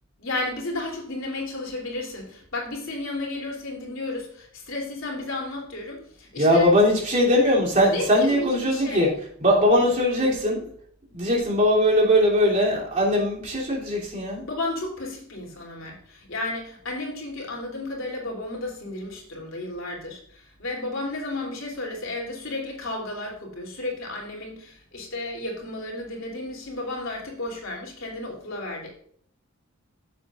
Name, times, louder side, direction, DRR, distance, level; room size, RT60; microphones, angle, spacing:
voice 1, 0.2-6.7 7.9-9.1 14.5-28.9, left 2 dB, 75° left, -1 dB, 3.2 m, -33 dB
voice 2, 6.4-9.1 9.4-10.6 11.1-14.4, equal, 40° right, -4 dB, 3.0 m, -20 dB
15.0 x 7.4 x 2.5 m, 0.62 s
head